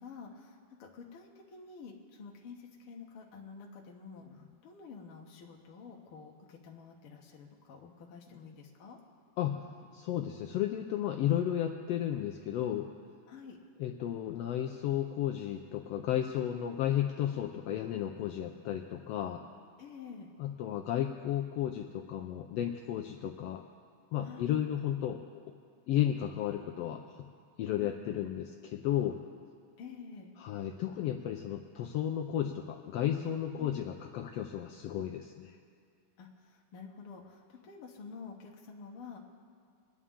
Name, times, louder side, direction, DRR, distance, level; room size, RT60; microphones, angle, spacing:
voice 1, 0.0-9.0 13.3-13.6 19.8-20.3 24.2-24.5 27.8-28.2 29.8-30.3 33.5-33.8 36.2-39.2, left 5 dB, 55° left, -1 dB, 1.8 m, -49 dB
voice 2, 9.9-12.9 13.8-19.4 20.4-23.6 24.1-25.4 25.9-27.2 27.6-29.2 30.4-35.5, left 11 dB, 90° left, 4 dB, 1.4 m, -33 dB
23.5 x 9.8 x 3.7 m, 2.3 s
omnidirectional pair, 3.5 m